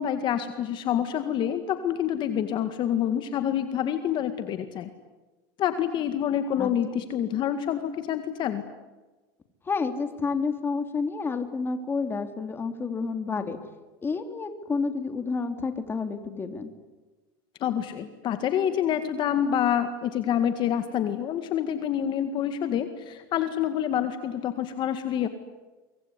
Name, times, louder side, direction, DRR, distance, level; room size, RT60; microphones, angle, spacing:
voice 1, 0.0-4.9 5.6-8.6 17.6-25.3, left 9 dB, 40° left, 9 dB, 2.0 m, -27 dB
voice 2, 9.6-13.6 14.0-16.7, left 4 dB, 20° left, 7 dB, 3.0 m, -29 dB
24.5 x 24.5 x 9.8 m, 1.2 s
supercardioid pair, 130°, 12 cm